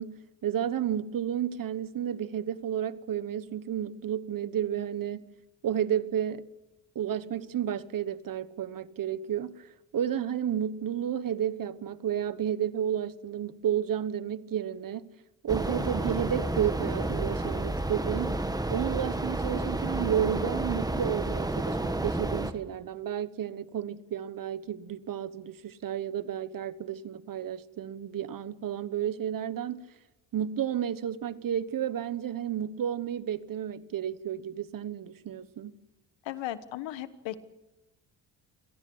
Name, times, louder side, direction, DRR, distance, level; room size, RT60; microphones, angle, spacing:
voice 1, 0.0-5.2 5.6-6.5 6.9-15.1 15.4-18.4 18.7-29.8 30.3-35.7, right 9 dB, 50° right, 1.2 m, -32 dB
sound 1, 15.5-22.5, right 2 dB, 10° right, 1.4 m, -30 dB
voice 2, 36.2-37.4, left 13 dB, 90° left, 1.4 m, -36 dB
26.5 x 18.0 x 7.9 m
cardioid pair, 115°, 44 cm